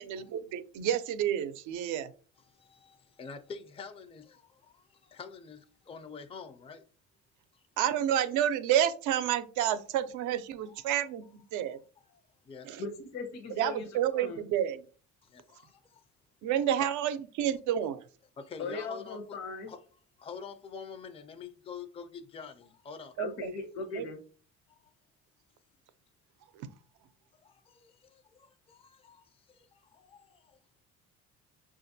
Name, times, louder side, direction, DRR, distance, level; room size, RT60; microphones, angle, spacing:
voice 1, 0.0-2.1 7.8-11.8 12.6-12.8 13.6-14.8 16.4-18.0 23.2-23.3 23.9-24.1 26.6-26.7, right 10 dB, 80° right, 0.5 m, -30 dB
voice 2, 2.4-6.8 7.5-7.6 10.7-10.9 11.7-11.8 12.1-12.7 15.2-16.0 16.8-16.9 18.4-19.2 19.7-19.8 20.2-23.1 24.7-24.8 27.3-30.6, left 5 dB, 20° left, 0.4 m, -47 dB
voice 3, 12.8-13.9 14.1-14.4 18.6-19.7 23.2-24.2, left 3 dB, 60° left, 0.8 m, -38 dB
5.6 x 2.5 x 2.6 m
cardioid pair, 100°, 30 cm